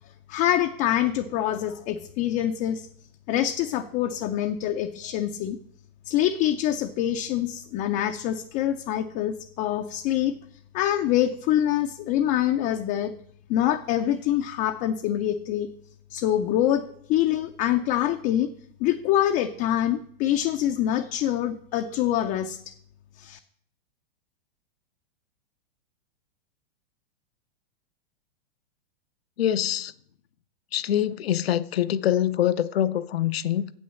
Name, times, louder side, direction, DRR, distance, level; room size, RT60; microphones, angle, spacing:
voice 1, 0.3-2.9 3.3-5.6 6.1-10.4 10.7-13.1 13.5-15.7 16.1-18.5 18.8-22.7 23.2-23.4, left 11 dB, 30° left, 0.4 m, -25 dB
voice 2, 29.4-29.9 30.7-33.7, left 11 dB, 80° left, 0.7 m, -24 dB
7.8 x 6.3 x 7.0 m
hypercardioid pair, 130°, 30 cm